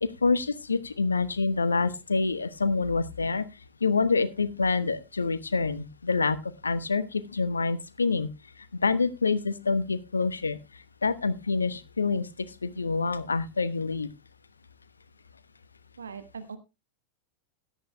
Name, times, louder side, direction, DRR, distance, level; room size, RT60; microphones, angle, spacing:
voice 1, 0.0-3.5 3.8-8.3 8.8-10.6 11.0-12.3 12.6-14.1, left 4 dB, 75° left, 15 dB, 1.0 m, -27 dB
voice 2, 16.0-16.6, right 6 dB, 70° right, 11 dB, 1.1 m, -40 dB
17.0 x 11.5 x 2.2 m, 0.26 s
figure-of-eight pair, 90°, 0 cm